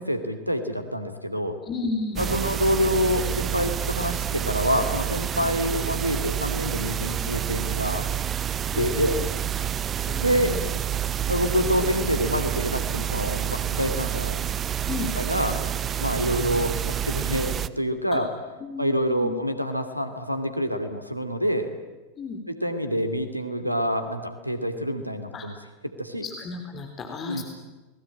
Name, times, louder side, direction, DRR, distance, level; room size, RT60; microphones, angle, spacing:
voice 1, 0.0-1.6 2.2-8.1 8.8-9.1 10.2-10.5 11.3-14.4 15.1-15.6 16.0-18.3 18.8-21.7 22.5-25.5 26.0-26.2 27.3-27.4, equal, 90° right, 9 dB, 2.5 m, -26 dB
voice 2, 1.6-2.4 5.3-5.4 8.7-9.3 9.5-9.6 10.0-10.7 14.8-15.1 18.1-18.2 18.6-19.3 22.2-22.4 25.3-25.5 26.2-27.4, left 4 dB, 25° left, 5 dB, 3.6 m, -33 dB
sound 1, 2.2-17.7, right 10 dB, 25° right, 0.9 m, -28 dB
29.0 x 20.5 x 8.8 m, 1.1 s
figure-of-eight pair, 90°, 0 cm